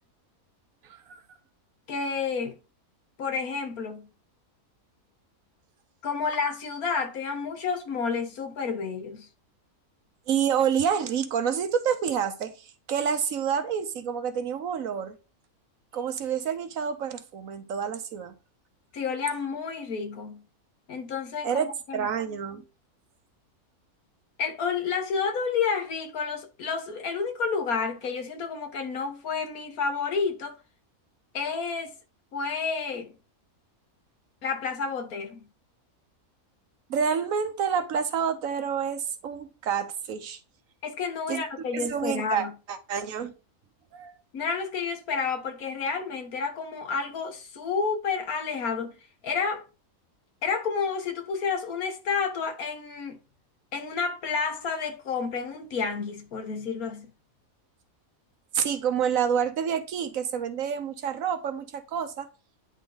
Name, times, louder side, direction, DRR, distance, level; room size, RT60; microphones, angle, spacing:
voice 1, 1.9-2.6 3.2-4.1 6.0-9.3 18.9-20.4 20.9-22.1 24.4-30.6 31.3-31.9 32.3-33.1 34.4-35.4 40.8-42.5 44.3-49.0 49.2-49.6 50.4-53.2 53.7-57.1, left 5 dB, 85° left, 1.7 m, -30 dB
voice 2, 10.3-15.2 15.9-18.3 21.4-22.6 36.9-40.4 41.3-41.4 41.7-43.3 43.9-44.1 58.5-62.3, right 7 dB, 70° right, 1.3 m, -28 dB
9.7 x 3.7 x 3.9 m
omnidirectional pair, 1.5 m